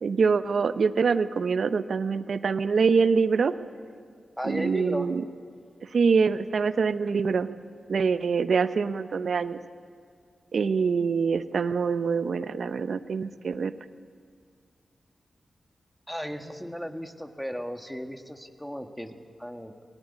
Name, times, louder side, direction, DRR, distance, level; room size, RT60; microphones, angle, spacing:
voice 1, 0.0-3.5 4.4-5.2 5.9-7.5 7.9-9.6 10.5-13.7, right 5 dB, 70° right, 12 dB, 0.8 m, -25 dB
voice 2, 4.4-5.1 16.1-19.7, equal, 5° left, 5 dB, 1.9 m, -35 dB
20.0 x 18.0 x 8.4 m, 2.2 s
cardioid pair, 45°, 0 cm